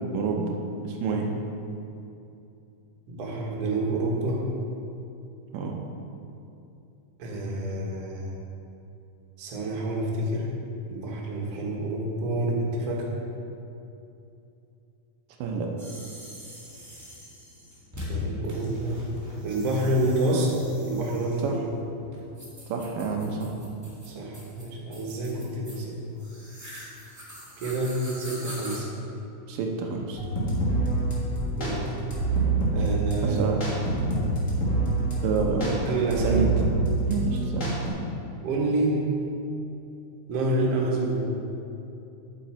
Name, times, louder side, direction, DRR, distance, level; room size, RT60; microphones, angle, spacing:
voice 1, 0.1-0.6 0.8-1.3 5.5-5.8 15.4-15.7 21.4-21.6 22.7-23.5 29.5-30.2 33.2-33.6 35.2-35.9 36.2-36.5 37.1-37.7, right 4 dB, 90° right, 1 dB, 2.5 m, -28 dB
voice 2, 3.1-4.4 7.2-8.3 9.4-10.5 10.9-13.1 18.1-19.0 19.4-21.6 24.1-26.0 27.6-28.9 31.6-31.9 32.7-33.4 35.9-36.7 38.4-39.0 40.3-41.2, right 1 dB, 55° right, -3 dB, 2.2 m, -28 dB
sound 1, 15.8-28.8, left 1 dB, 10° right, 1.2 m, -42 dB
sound 2, 30.2-37.9, right 2 dB, 35° left, 1.3 m, -26 dB
8.6 x 8.2 x 4.3 m, 2.7 s
omnidirectional pair, 3.8 m